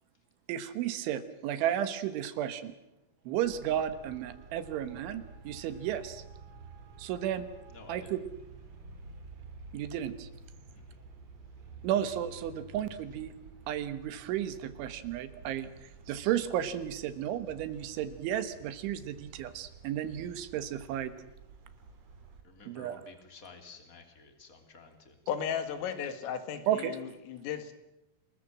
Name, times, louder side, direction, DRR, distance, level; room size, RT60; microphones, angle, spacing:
voice 1, 0.5-2.7 3.3-6.2 7.0-7.4 7.9-8.2 9.7-10.3 11.8-13.3 13.7-21.1 22.7-23.0 26.7-27.0, right 10 dB, 75° right, 12 dB, 3.5 m, -33 dB
Traffic noise roadway noise, 3.4-22.4, right 4 dB, 40° right, 2.9 m, -51 dB
voice 2, 7.7-8.1 10.7-11.0 22.4-25.9, left 4 dB, 20° left, 6 dB, 2.6 m, -53 dB
voice 3, 25.3-27.7, left 8 dB, 80° left, 10 dB, 4.6 m, -35 dB
28.0 x 20.5 x 7.7 m, 0.91 s
omnidirectional pair, 5.8 m